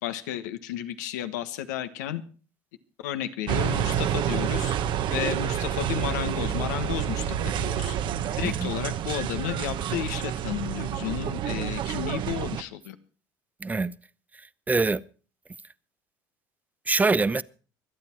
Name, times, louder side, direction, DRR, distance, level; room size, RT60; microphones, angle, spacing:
voice 1, 0.0-2.2 3.0-4.8 5.1-8.0 8.4-13.0, left 11 dB, 90° left, 1.3 m, -32 dB
sound 1, 3.5-12.6, right 10 dB, 55° right, 1.0 m, -28 dB
voice 2, 8.4-8.7 13.6-13.9 14.3-15.0 16.9-17.4, right 3 dB, 15° right, 0.6 m, -25 dB
24.5 x 8.9 x 4.5 m
supercardioid pair, 85°, 9 cm